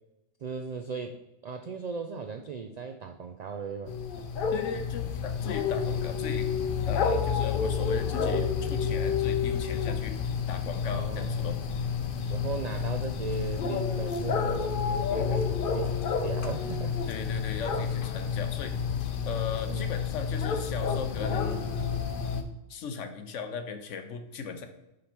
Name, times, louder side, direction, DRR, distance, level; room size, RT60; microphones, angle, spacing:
voice 1, 0.4-3.9 10.8-11.5 12.3-17.0 19.7-19.9, right 5 dB, 80° right, 6 dB, 0.3 m, -37 dB
sound 1, 3.9-22.4, left 6 dB, 55° left, 0.7 m, -29 dB
voice 2, 4.5-6.5 6.9-11.6 15.1-15.4 17.1-18.7 19.2-21.6 22.7-24.7, left 5 dB, 85° left, 7 dB, 1.1 m, -37 dB
5.5 x 5.1 x 4.4 m, 0.94 s
omnidirectional pair, 1.2 m